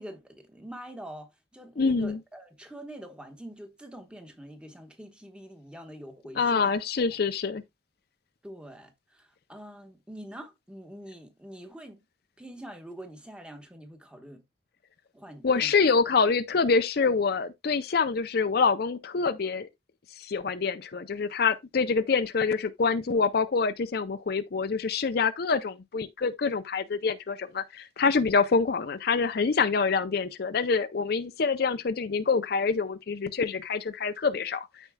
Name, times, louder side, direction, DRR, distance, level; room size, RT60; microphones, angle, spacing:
voice 1, 0.0-6.7 7.1-7.3 8.4-12.0 12.4-14.4 15.1-15.8 28.2-28.3, equal, 5° right, 1.0 m, -45 dB
voice 2, 1.8-2.2 6.4-7.6 15.4-19.7 20.2-34.7, left 5 dB, 55° left, 0.5 m, -26 dB
13.5 x 4.5 x 2.2 m
head